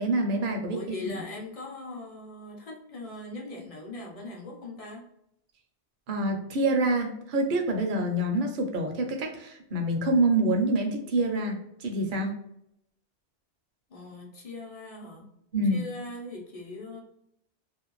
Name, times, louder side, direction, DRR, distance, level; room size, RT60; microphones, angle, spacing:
voice 1, 0.0-1.0 6.1-12.3 15.5-15.8, right 2 dB, 60° right, 3 dB, 0.7 m, -26 dB
voice 2, 0.7-5.1 13.9-15.3 15.7-17.0, left 2 dB, 40° left, -1 dB, 0.6 m, -40 dB
2.5 x 2.2 x 3.0 m, 0.76 s
omnidirectional pair, 1.1 m